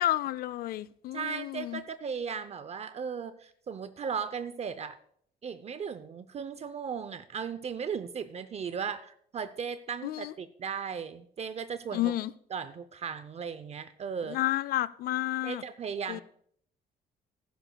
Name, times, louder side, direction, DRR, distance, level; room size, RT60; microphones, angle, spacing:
voice 1, 0.0-1.8 10.0-10.3 11.9-12.3 14.3-15.6 16.1-16.2, left 14 dB, 60° left, 0.4 m, -31 dB
voice 2, 1.1-5.0 5.4-12.1 12.5-14.4 15.4-16.2, right 6 dB, 40° right, 0.6 m, -36 dB
15.0 x 12.0 x 2.2 m
cardioid pair, 105°, 17 cm